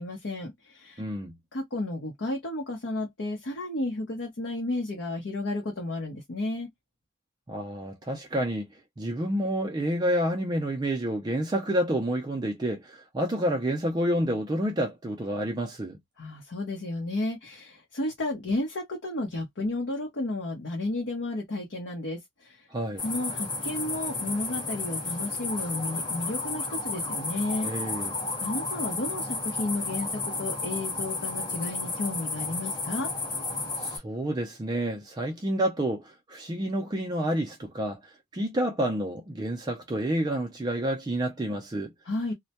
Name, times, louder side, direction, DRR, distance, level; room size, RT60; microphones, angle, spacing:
voice 1, 0.0-1.0 1.5-6.7 16.2-22.7 23.0-27.7 28.4-33.1 42.0-42.3, left 2 dB, 70° left, 0.7 m, -32 dB
voice 2, 1.0-1.4 7.5-8.7 9.0-16.0 22.7-23.0 27.6-28.2 33.8-41.9, right 1 dB, 20° right, 0.3 m, -29 dB
sound 1, 23.0-34.0, left 3 dB, 25° left, 1.0 m, -32 dB
2.1 x 2.1 x 2.7 m
head